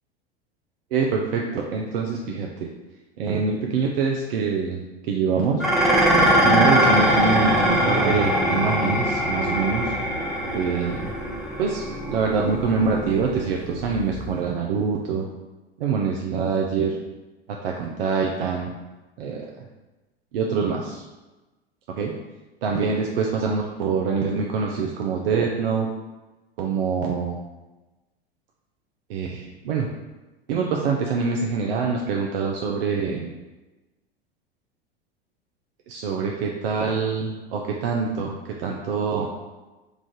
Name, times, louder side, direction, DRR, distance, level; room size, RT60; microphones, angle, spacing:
voice 1, 0.9-2.7 3.2-4.8 5.1-5.6 6.4-9.9 10.4-11.1 11.6-15.3 15.8-17.0 17.5-18.7 19.2-19.4 20.3-21.0 22.0-22.1 22.6-25.9 26.6-27.4 29.1-29.9 30.5-33.3 35.9-39.3, right 5 dB, 65° right, 0 dB, 0.5 m, -25 dB
Dishes pots and pans, 5.6-14.4, equal, ahead, 0.6 m, -22 dB
3.1 x 2.4 x 3.7 m, 1.1 s
hypercardioid pair, 85°, 31 cm